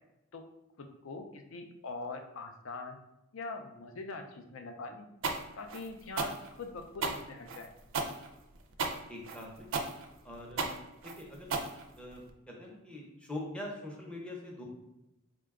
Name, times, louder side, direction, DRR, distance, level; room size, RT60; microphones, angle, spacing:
voice 1, 0.8-3.0 3.3-5.1 5.6-7.7, left 3 dB, 60° left, 5 dB, 0.5 m, -43 dB
sound 1, 5.2-12.3, right 4 dB, 60° right, 0.4 m, -35 dB
voice 2, 9.1-9.7 10.2-10.8 11.2-11.5 12.0-14.6, left 1 dB, 5° left, -2 dB, 0.6 m, -43 dB
3.8 x 2.2 x 3.5 m, 0.92 s
head